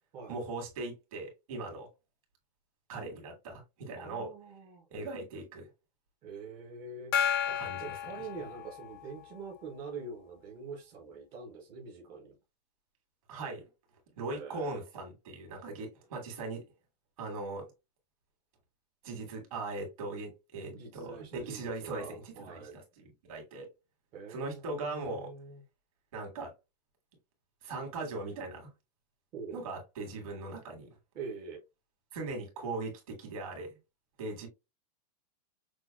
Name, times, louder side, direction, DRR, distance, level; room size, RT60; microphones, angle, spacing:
voice 1, 0.3-1.9 2.9-4.3 4.9-5.7 7.5-8.3 13.3-13.7 14.2-16.6 17.2-17.7 19.0-23.7 24.3-25.3 26.1-26.5 27.6-28.7 29.5-30.9 32.1-33.7 34.2-34.5, right 3 dB, 55° right, 1.8 m, -39 dB
voice 2, 4.0-4.8 6.2-7.1 7.4-12.3 14.3-14.8 20.7-22.8 24.1-25.6 29.3-29.6 31.1-31.6, right 4 dB, 20° right, 0.6 m, -44 dB
Gong, 7.1-9.2, left 9 dB, 35° left, 0.5 m, -32 dB
6.1 x 2.1 x 2.3 m
supercardioid pair, 175°, 21 cm